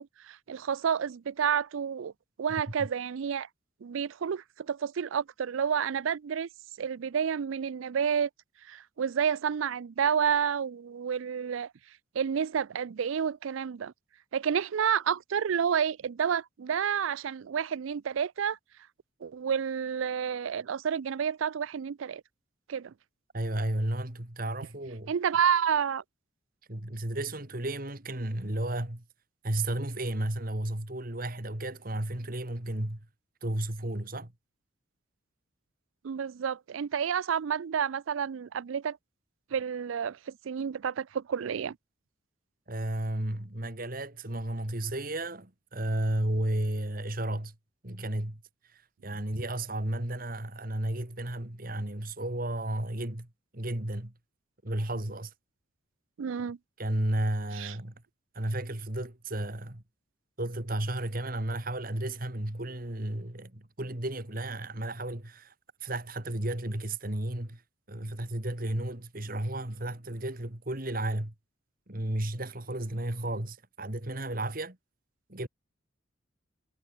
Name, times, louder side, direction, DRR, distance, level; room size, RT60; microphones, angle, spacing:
voice 1, 0.0-2.1 2.4-3.5 3.8-6.5 6.8-8.3 8.7-11.7 12.2-13.9 14.3-18.6 19.2-22.2 22.7-22.9 25.1-26.0 36.0-39.0 39.5-41.8 56.2-56.6 57.5-57.7, right 7 dB, 75° right, 0.4 m, -30 dB
voice 2, 23.3-25.1 26.7-29.0 29.4-33.0 33.4-34.3 42.7-47.5 47.8-48.4 48.7-53.3 53.5-54.1 54.6-55.3 56.8-57.9 58.3-59.8 60.4-65.5 65.8-67.6 67.9-71.3 71.9-74.8 75.3-75.5, right 1 dB, 45° right, 2.4 m, -33 dB
head